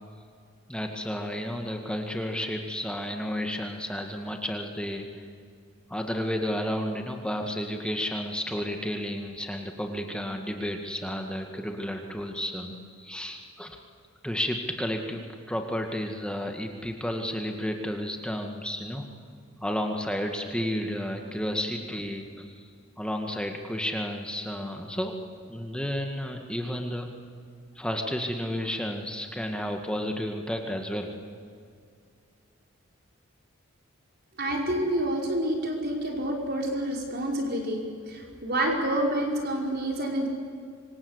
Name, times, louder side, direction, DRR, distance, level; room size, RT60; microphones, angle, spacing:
voice 1, 0.7-5.1 5.9-13.8 14.2-19.0 19.6-22.5 23.0-25.1 25.5-27.1 27.8-31.1, equal, 5° left, 3 dB, 2.0 m, -32 dB
voice 2, 34.4-37.8 38.1-40.3, right 1 dB, 45° right, 1 dB, 5.2 m, -28 dB
26.5 x 25.0 x 8.2 m, 2.3 s
head